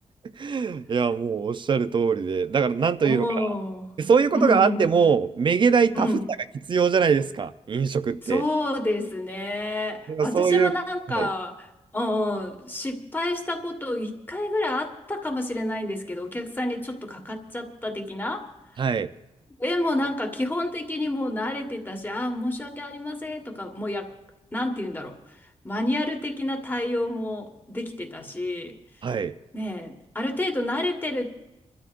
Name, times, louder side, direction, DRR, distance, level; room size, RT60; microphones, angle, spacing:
voice 1, 0.4-3.5 4.0-6.1 6.7-8.4 10.1-10.7 11.1-11.3 18.8-19.1 29.0-29.3, right 6 dB, 45° right, 13 dB, 0.5 m, -22 dB
voice 2, 3.0-3.8 4.3-4.9 5.9-6.2 8.2-11.7 11.9-18.5 19.6-24.2 24.5-25.2 25.6-28.8 29.5-31.3, left 1 dB, 15° left, 4 dB, 1.6 m, -29 dB
28.5 x 12.5 x 2.6 m, 0.98 s
wide cardioid pair, 145°, 12 cm